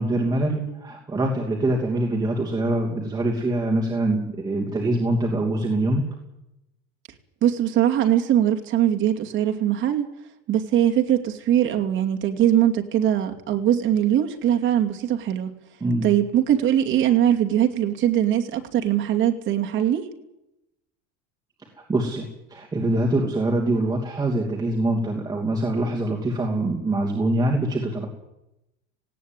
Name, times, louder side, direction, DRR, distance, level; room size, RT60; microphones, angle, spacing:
voice 1, 0.0-6.0 15.8-16.0 21.9-28.1, right 1 dB, 10° right, -1 dB, 2.8 m, -24 dB
voice 2, 7.4-10.1 10.5-15.5 16.0-20.0, right 11 dB, 35° right, 3 dB, 2.6 m, -21 dB
18.5 x 17.0 x 9.1 m, 0.88 s
cardioid pair, 170°, 33 cm